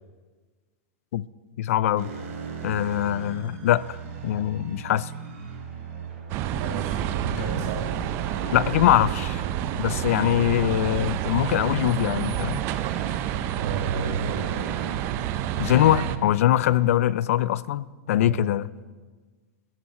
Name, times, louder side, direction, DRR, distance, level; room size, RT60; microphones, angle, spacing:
voice 1, 1.6-2.1 2.6-4.0 4.2-5.1 8.5-9.4 9.8-12.6 15.6-18.7, left 12 dB, 70° left, 20 dB, 0.4 m, -22 dB
sound 1, 2.0-16.8, right 6 dB, 70° right, 3.2 m, -37 dB
sound 2, 6.3-16.2, right 12 dB, 30° right, 0.5 m, -29 dB
voice 2, 6.5-7.9 9.9-10.0 13.6-14.6 18.1-18.4, right 5 dB, 85° right, -3 dB, 2.0 m, -32 dB
sound 3, 7.4-13.6, left 3 dB, 90° left, 3.8 m, -50 dB
14.5 x 11.0 x 4.2 m, 1.4 s
supercardioid pair, 160°, 8 cm